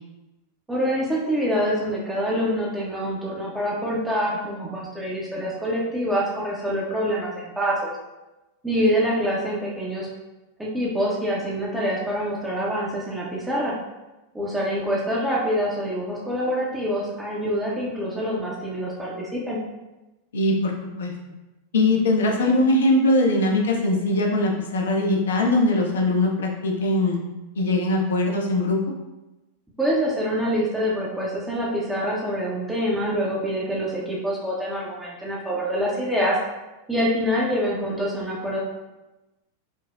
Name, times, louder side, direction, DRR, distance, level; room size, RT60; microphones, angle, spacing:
voice 1, 0.7-7.9 8.6-10.1 10.6-13.7 14.3-19.6 29.8-36.4 36.9-38.6, equal, 5° right, -5 dB, 0.6 m, -25 dB
voice 2, 20.3-20.7 21.0-21.1 21.7-27.2 27.5-28.8, left 2 dB, 65° left, 0 dB, 0.5 m, -21 dB
4.3 x 2.0 x 2.3 m, 1.0 s
figure-of-eight pair, 90°, 0 cm